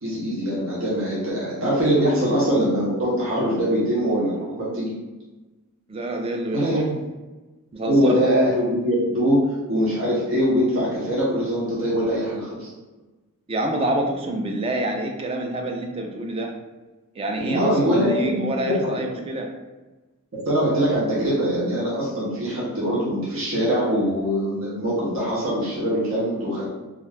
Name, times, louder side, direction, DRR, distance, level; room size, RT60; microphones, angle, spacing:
voice 1, 0.0-4.9 6.5-6.8 7.9-12.7 17.4-19.0 20.3-26.7, equal, 65° right, -7 dB, 0.7 m, -22 dB
voice 2, 5.9-6.8 7.7-8.2 13.5-16.5 17.2-19.5, right 1 dB, 25° right, 2 dB, 0.3 m, -27 dB
2.4 x 2.2 x 3.2 m, 1.2 s
head